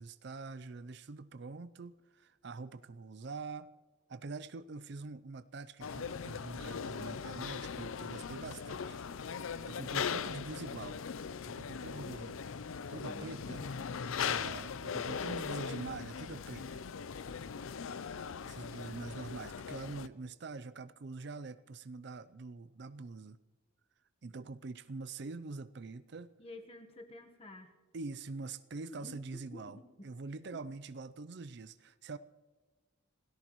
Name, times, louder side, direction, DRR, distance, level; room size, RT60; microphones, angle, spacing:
voice 1, 0.0-3.7 4.1-9.3 9.7-11.0 11.5-12.4 12.9-13.7 14.2-16.8 18.4-23.4 24.2-26.3 27.9-32.2, right 3 dB, 55° right, 14 dB, 0.5 m, -45 dB
sound 1, 5.8-20.1, left 6 dB, 80° left, 0.5 m, -40 dB
voice 2, 13.0-13.9 26.4-27.8 28.9-30.1, left 1 dB, 30° left, 5 dB, 1.3 m, -51 dB
27.0 x 17.5 x 3.1 m, 1.3 s
head